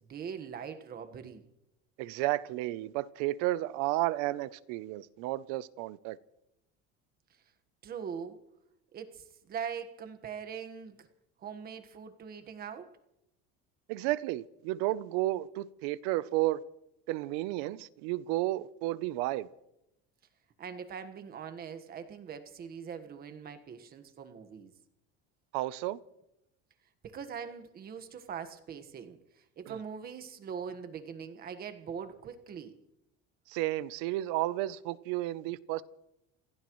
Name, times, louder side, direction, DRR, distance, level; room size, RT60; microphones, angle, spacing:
voice 1, 0.1-1.4 7.8-8.4 8.9-11.1 11.4-12.9 20.6-24.7 27.0-29.2 29.6-32.8, right 7 dB, 30° right, 1.5 m, -42 dB
voice 2, 2.0-6.2 13.9-16.6 17.1-19.5 25.5-26.0 33.5-35.8, right 16 dB, 75° right, 0.7 m, -32 dB
28.0 x 16.0 x 3.1 m
cardioid pair, 160°, 29 cm